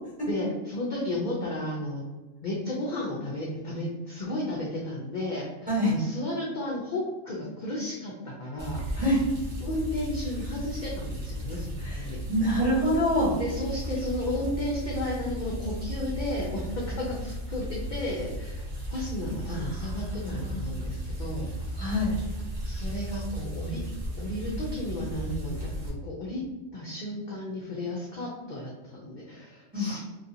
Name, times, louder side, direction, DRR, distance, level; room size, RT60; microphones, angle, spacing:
voice 1, 0.3-2.0 2.4-9.0 9.6-12.2 13.4-21.8 22.6-23.8 24.2-26.4 26.7-30.0, left 1 dB, 55° left, -4 dB, 0.5 m, -33 dB
sound 1, 8.6-25.9, right 1 dB, 45° right, 0.7 m, -35 dB
voice 2, 11.8-13.3 19.5-20.6 21.8-22.2 29.7-30.0, equal, 5° right, -8 dB, 1.2 m, -27 dB
3.0 x 2.7 x 2.6 m, 1.1 s
omnidirectional pair, 1.4 m